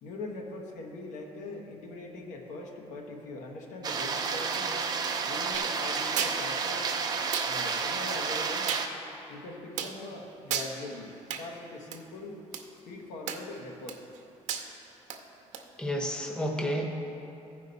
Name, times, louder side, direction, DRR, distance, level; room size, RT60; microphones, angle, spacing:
voice 1, 0.0-4.8 5.2-6.9 7.5-8.7 9.3-12.4 12.9-14.1, left 2 dB, 85° left, 1 dB, 1.2 m, -41 dB
sound 1, 3.8-8.9, right 5 dB, 35° right, 0.6 m, -31 dB
sound 2, 5.5-5.7 6.2-6.4 7.3-7.5 8.7-8.9 9.8-10.0 10.5-10.7 11.3-11.4 11.9-12.0 12.5-12.6 13.3-13.6 13.9-14.2 14.5-14.7 15.1-15.2 15.5-15.6, right 8 dB, 80° right, 0.7 m, -33 dB
voice 2, 15.8-16.9, equal, 5° left, 1 dB, 0.8 m, -30 dB
14.5 x 5.1 x 4.0 m, 2.8 s
cardioid pair, 145°, 12 cm